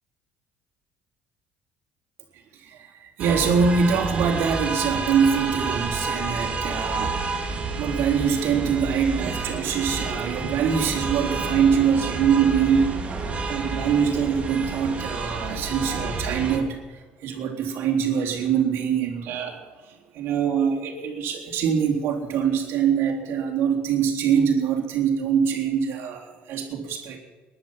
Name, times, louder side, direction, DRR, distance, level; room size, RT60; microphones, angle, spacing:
voice 1, 2.5-12.9 13.2-27.2, right 7 dB, 70° right, -1 dB, 3.8 m, -24 dB
sound 1, 3.2-16.6, right 4 dB, 30° right, 3.2 m, -29 dB
19.5 x 11.5 x 5.9 m, 1.3 s
supercardioid pair, 95°, 4 cm